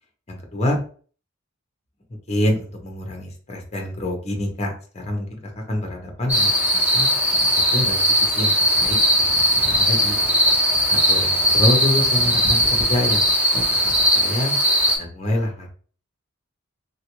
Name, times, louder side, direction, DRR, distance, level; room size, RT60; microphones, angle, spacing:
voice 1, 0.3-0.8 2.3-5.4 5.7-7.1 7.7-10.2 10.9-13.2 13.5-13.6 14.1-14.5 15.0-15.7, left 1 dB, 30° left, 2 dB, 0.7 m, -26 dB
sound 1, 6.3-15.0, equal, 5° right, 0.7 m, -19 dB
3.2 x 2.4 x 2.9 m, 0.42 s
head